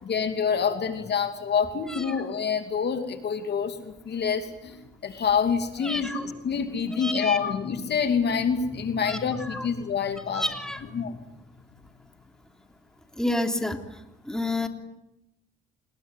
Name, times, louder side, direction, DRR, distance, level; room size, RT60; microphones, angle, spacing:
voice 1, 0.0-10.4 10.9-11.2, left 6 dB, 60° left, 7 dB, 2.8 m, -27 dB
voice 2, 1.9-2.2 5.8-6.3 7.0-7.5 9.0-9.2 9.5-9.7 10.3-10.8 13.2-13.8 14.2-14.7, left 1 dB, 5° left, 5 dB, 3.3 m, -29 dB
27.0 x 21.5 x 9.3 m, 0.90 s
cardioid pair, 90°, 20 cm